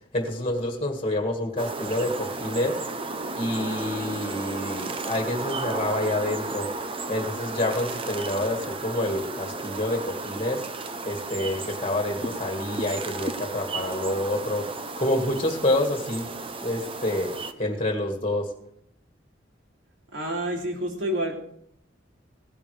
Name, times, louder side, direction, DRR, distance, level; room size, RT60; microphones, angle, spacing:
voice 1, 0.1-2.8 3.4-6.7 7.1-10.6 11.1-16.3 16.6-17.3 17.6-18.5, left 1 dB, 30° left, 2 dB, 1.9 m, -28 dB
sound 1, 1.6-17.5, right 3 dB, 30° right, 0.7 m, -33 dB
voice 2, 20.1-21.4, equal, 80° right, 0 dB, 3.0 m, -28 dB
17.5 x 10.5 x 3.3 m, 0.69 s
head